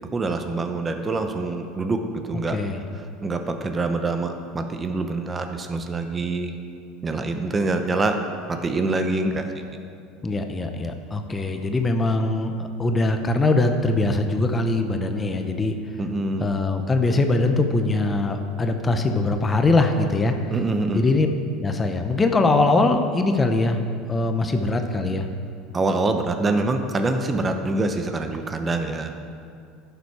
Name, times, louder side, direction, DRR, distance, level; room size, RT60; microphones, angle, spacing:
voice 1, 0.1-2.6 2.9-6.5 7.0-8.2 8.5-9.5 16.0-16.5 20.5-21.0 25.7-29.1, right 3 dB, 20° right, 6 dB, 0.8 m, -25 dB
voice 2, 10.2-15.8 16.4-20.3 20.9-21.3 21.6-23.8 24.1-25.3, left 2 dB, 20° left, 6 dB, 0.8 m, -22 dB
11.0 x 7.0 x 4.8 m, 2.3 s
supercardioid pair, 105°, 0 cm